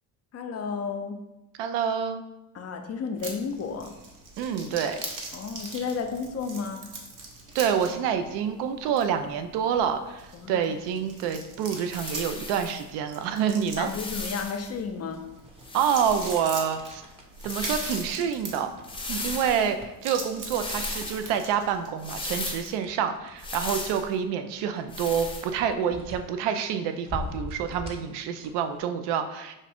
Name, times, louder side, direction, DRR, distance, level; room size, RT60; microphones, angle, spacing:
voice 1, 0.3-1.2 2.5-3.9 5.3-6.9 10.3-10.7 13.8-15.2, left 5 dB, 40° left, 5 dB, 0.5 m, -32 dB
voice 2, 1.6-2.2 4.4-5.0 7.5-13.9 15.7-17.0 17.4-18.7 19.1-29.5, right 8 dB, 80° right, 8 dB, 0.5 m, -27 dB
sound 1, 3.2-21.9, right 3 dB, 50° right, 1.0 m, -42 dB
sound 2, 11.9-12.8 13.7-14.7 15.6-16.6 17.3-18.2 18.8-19.7 20.5-21.3 22.0-22.7 23.4-24.1 24.9-25.5, left 2 dB, 10° left, 0.8 m, -36 dB
sound 3, 15.1-28.8, left 2 dB, 15° right, 0.8 m, -45 dB
5.3 x 2.5 x 3.4 m, 0.95 s
supercardioid pair, 85°, 41 cm